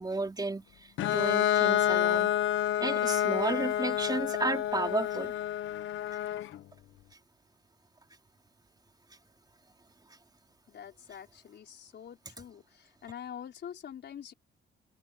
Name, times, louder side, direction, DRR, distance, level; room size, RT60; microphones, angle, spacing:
voice 1, 0.0-2.3 2.8-5.3, right 2 dB, 20° right, 3.1 m, -33 dB
Bowed string instrument, 1.0-6.6, left 11 dB, 75° left, 1.2 m, -28 dB
voice 2, 10.7-14.3, left 9 dB, 60° left, 4.1 m, -45 dB
cardioid pair, 90°, 20 cm